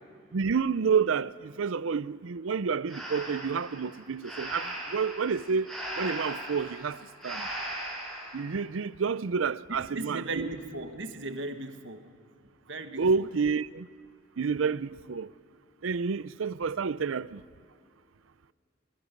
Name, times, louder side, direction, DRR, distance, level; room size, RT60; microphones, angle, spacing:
voice 1, 0.3-7.0 7.2-7.5 8.3-10.5 13.0-13.9 14.4-15.3 15.8-17.4, right 5 dB, 90° right, 0.5 m, -29 dB
Breathing, 2.9-8.4, right 1 dB, ahead, 6.7 m, -38 dB
voice 2, 9.7-12.1 12.7-13.3, right 2 dB, 65° right, 1.5 m, -37 dB
25.5 x 21.5 x 5.3 m
head